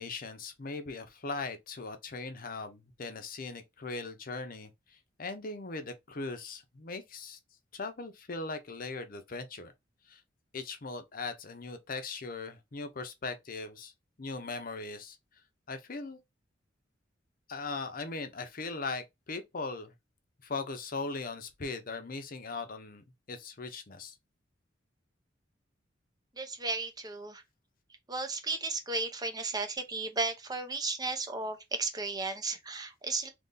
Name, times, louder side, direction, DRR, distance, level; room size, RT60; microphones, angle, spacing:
voice 1, 0.0-4.7 5.2-7.4 7.7-9.7 10.1-10.2 10.5-13.9 14.2-15.2 15.7-16.2 17.5-19.9 20.4-24.2, left 3 dB, 50° left, 0.7 m, -39 dB
voice 2, 26.4-27.4 28.1-33.3, right 3 dB, 20° right, 0.7 m, -34 dB
2.9 x 2.7 x 3.7 m
head